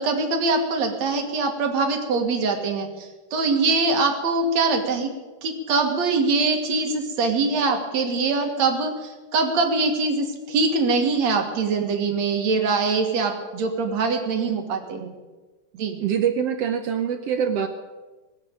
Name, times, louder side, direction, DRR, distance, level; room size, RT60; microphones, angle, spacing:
voice 1, 0.0-5.1 5.4-15.1 15.7-16.0, right 3 dB, 60° right, 4 dB, 2.8 m, -23 dB
voice 2, 16.0-17.7, right 8 dB, 75° right, 7 dB, 1.4 m, -24 dB
20.5 x 7.8 x 8.8 m, 1.2 s
omnidirectional pair, 3.8 m